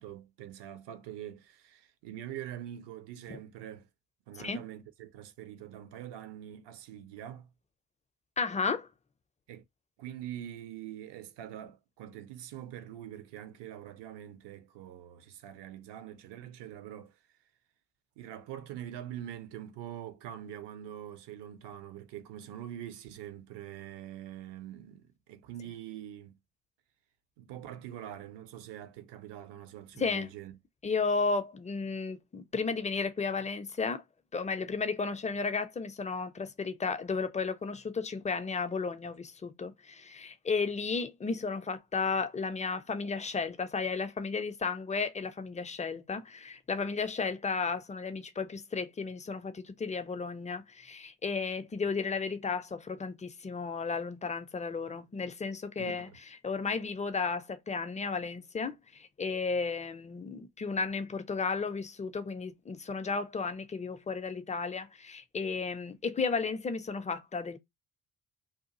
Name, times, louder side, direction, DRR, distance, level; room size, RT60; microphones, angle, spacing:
voice 1, 0.0-3.9 4.3-7.5 9.5-9.6 10.0-17.2 18.2-26.4 27.4-30.6 55.8-56.2, right 11 dB, 55° right, 0.7 m, -44 dB
voice 2, 8.4-8.9 30.0-30.3 30.8-34.0 34.3-56.1 56.4-67.6, left 4 dB, 15° left, 0.4 m, -33 dB
2.7 x 2.4 x 2.8 m
hypercardioid pair, 45°, 49 cm